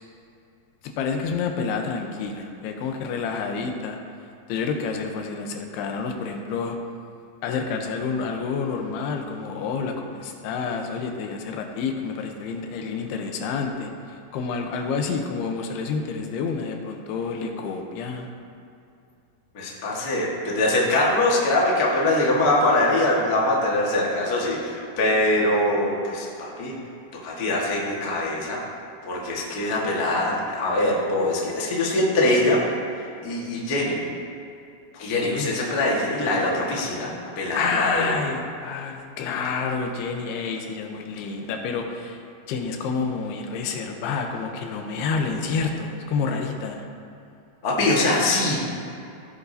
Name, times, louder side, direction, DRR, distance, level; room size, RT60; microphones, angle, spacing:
voice 1, 1.0-4.0 4.5-6.8 7.4-18.3 35.1-35.8 37.5-42.2 42.5-46.9, left 5 dB, 85° left, 3 dB, 2.9 m, -29 dB
voice 2, 19.5-26.7 27.2-28.6 29.0-32.6 33.2-34.0 34.9-38.2 47.6-48.6, left 1 dB, 60° left, -4 dB, 0.9 m, -23 dB
16.0 x 8.0 x 2.7 m, 2.6 s
omnidirectional pair, 4.5 m